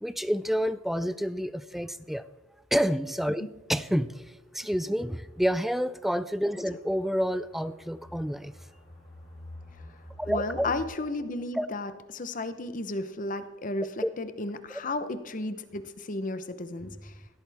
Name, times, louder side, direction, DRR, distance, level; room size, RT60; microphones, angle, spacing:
voice 1, 0.0-2.2 2.7-4.2 4.5-8.5 10.2-10.7 11.5-11.7 14.0-14.1, equal, ahead, 14 dB, 0.4 m, -29 dB
sound 1, 2.6-2.7 3.1-3.2 3.7-3.8 4.7-10.9, left 1 dB, 20° left, 5.8 m, -48 dB
voice 2, 10.3-17.1, left 2 dB, 40° left, 11 dB, 0.8 m, -33 dB
17.0 x 13.0 x 3.5 m, 1.1 s
head